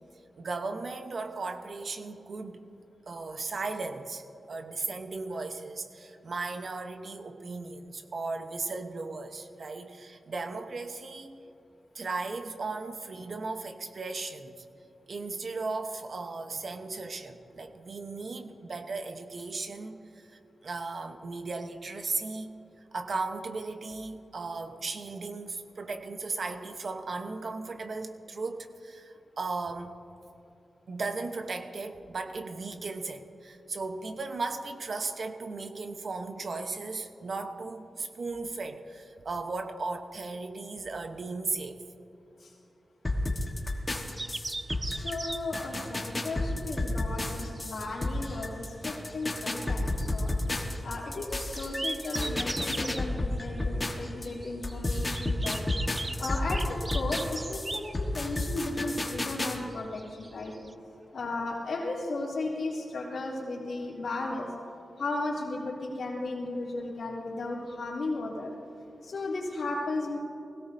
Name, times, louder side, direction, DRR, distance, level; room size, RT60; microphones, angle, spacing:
voice 1, 0.4-2.7 3.1-4.2 4.5-11.4 11.9-14.6 15.1-20.3 20.6-22.5 22.9-29.9 30.9-41.8, right 3 dB, 55° right, 6 dB, 1.0 m, -36 dB
sound 1, 43.0-54.3 54.6-59.6, left 2 dB, 25° left, 1.4 m, -32 dB
sound 2, 44.2-60.7, right 2 dB, 25° right, 0.4 m, -40 dB
voice 2, 44.9-50.3 50.8-55.6 56.2-60.5 61.1-64.5 65.0-68.5 69.0-70.2, left 2 dB, 75° left, -5 dB, 3.3 m, -35 dB
20.5 x 17.0 x 2.8 m, 2.7 s
wide cardioid pair, 100°, 0 cm